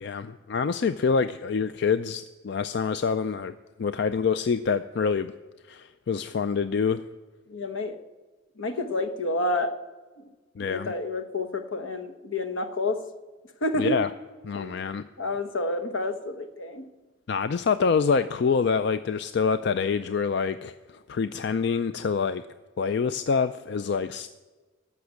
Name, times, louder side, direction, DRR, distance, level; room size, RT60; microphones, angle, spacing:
voice 1, 0.0-3.5 3.8-5.3 5.7-7.0 10.6-10.9 13.8-14.1 14.4-15.0 17.3-22.4 22.8-24.3, left 5 dB, 55° left, 11 dB, 0.4 m, -26 dB
voice 2, 7.5-8.0 8.6-9.7 10.2-10.3 10.6-13.0 13.6-14.0 14.5-14.8 15.2-16.9, left 2 dB, 80° left, 9 dB, 1.1 m, -29 dB
14.5 x 6.0 x 8.4 m, 1.3 s
head